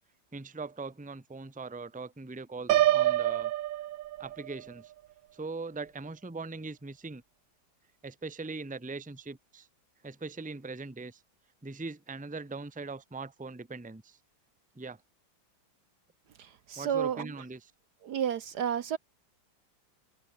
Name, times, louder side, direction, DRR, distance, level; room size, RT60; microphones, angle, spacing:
voice 1, 0.3-3.5 4.2-4.9 5.3-7.2 8.0-9.7 10.0-11.2 11.6-14.2 14.8-15.0 16.8-17.7, right 3 dB, 5° right, 1.0 m, -41 dB
Piano, 2.7-4.6, right 14 dB, 80° right, 1.4 m, -26 dB
voice 2, 16.4-17.3 18.0-19.0, right 9 dB, 65° right, 1.3 m, -31 dB
omnidirectional pair, 2.1 m